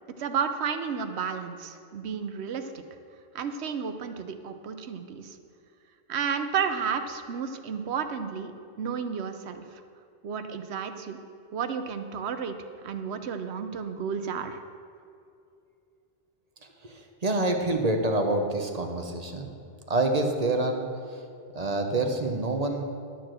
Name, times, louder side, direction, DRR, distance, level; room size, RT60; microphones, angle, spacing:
voice 1, 0.2-2.8 3.3-5.4 6.1-8.5 8.8-9.8 10.2-11.2 11.5-12.5 12.8-14.6, right 6 dB, 65° right, 8 dB, 1.0 m, -32 dB
voice 2, 16.8-19.5 19.9-20.9 21.5-22.8, right 2 dB, 40° right, 4 dB, 0.8 m, -27 dB
12.0 x 4.7 x 7.6 m, 2.5 s
omnidirectional pair, 1.2 m